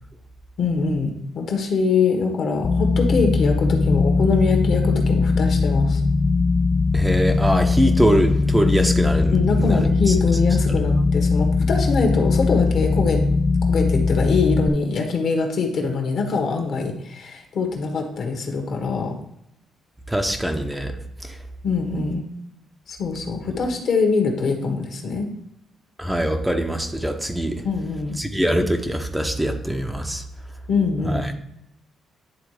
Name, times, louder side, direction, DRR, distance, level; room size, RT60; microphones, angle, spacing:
voice 1, 0.6-6.0 9.3-13.2 13.6-19.2 21.6-22.2 22.9-25.3 27.6-28.2 30.7-31.3, left 4 dB, 65° left, 3 dB, 1.4 m, -23 dB
sound 1, 2.6-14.7, left 4 dB, 40° left, 0.3 m, -20 dB
voice 2, 6.9-10.1 20.1-20.9 21.2-21.3 26.0-27.6 28.2-30.2 31.1-31.2, equal, 10° right, 5 dB, 0.7 m, -23 dB
10.5 x 3.5 x 3.3 m, 0.78 s
cardioid pair, 90°, 0 cm